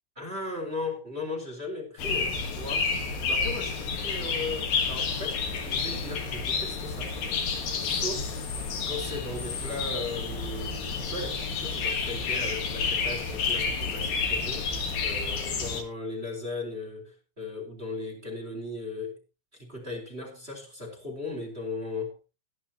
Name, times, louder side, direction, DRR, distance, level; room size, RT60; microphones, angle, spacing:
voice 1, 0.2-2.9 3.3-7.1 7.8-8.4 8.9-19.2 19.5-22.2, left 2 dB, 15° right, 0 dB, 3.7 m, -37 dB
sound 1, 2.0-15.8, left 5 dB, 55° left, 3.1 m, -30 dB
18.0 x 10.5 x 2.9 m, 0.29 s
omnidirectional pair, 5.7 m